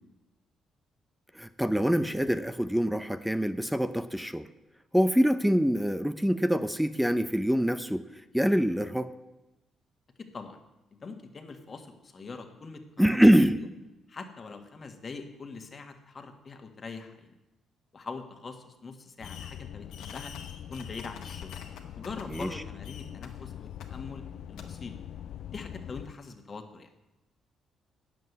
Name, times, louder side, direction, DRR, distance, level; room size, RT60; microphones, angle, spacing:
voice 1, 1.4-4.5 4.9-8.0 8.3-9.1 13.0-13.6 22.3-22.5, equal, 5° right, 11 dB, 0.6 m, -24 dB
voice 2, 11.0-13.2 14.1-17.3 17.9-20.3 20.7-21.5 21.9-24.2 24.5-24.9 25.5-26.9, left 4 dB, 40° left, 5 dB, 1.6 m, -43 dB
Fireworks, 19.2-19.6 19.9-22.6 22.8-23.3 23.8-23.9 24.6-24.7, left 7 dB, 90° left, 1.4 m, -47 dB
sound 1, 19.2-26.1, left 10 dB, 70° left, 0.3 m, -43 dB
9.3 x 7.7 x 8.0 m, 1.0 s
cardioid pair, 90°, 0 cm